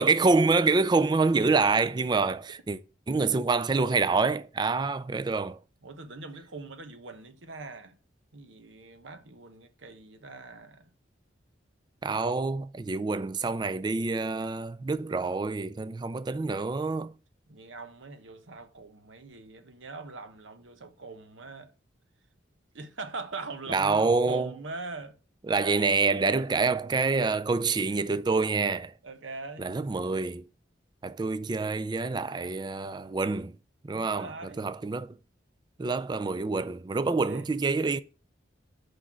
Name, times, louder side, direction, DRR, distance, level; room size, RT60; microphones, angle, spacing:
voice 1, 0.0-2.4 2.7-2.8 3.1-5.6 12.0-17.1 23.7-24.6 25.5-28.9 29.6-30.5 31.0-33.6 33.8-35.2 35.8-38.0, right 4 dB, 25° right, 0.3 m, -26 dB
voice 2, 5.8-7.9 8.3-10.9 17.5-21.7 22.7-25.2 29.0-29.7 33.9-34.6 37.3-37.5, right 3 dB, 90° right, 1.0 m, -42 dB
6.1 x 5.1 x 6.0 m
head